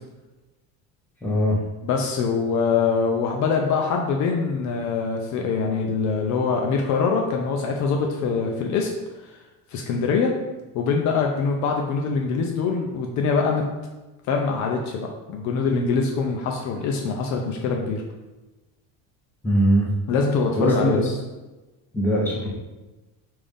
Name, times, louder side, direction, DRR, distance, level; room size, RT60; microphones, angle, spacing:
voice 1, 1.2-1.6 19.4-19.9 20.6-20.9 21.9-22.5, equal, 5° left, -5 dB, 0.8 m, -20 dB
voice 2, 1.8-8.9 9.2-9.3 9.7-10.3 10.7-13.6 14.3-18.0 20.1-21.1, left 5 dB, 50° left, 1 dB, 0.5 m, -24 dB
5.4 x 2.6 x 3.4 m, 1.1 s
cardioid pair, 155°, 36 cm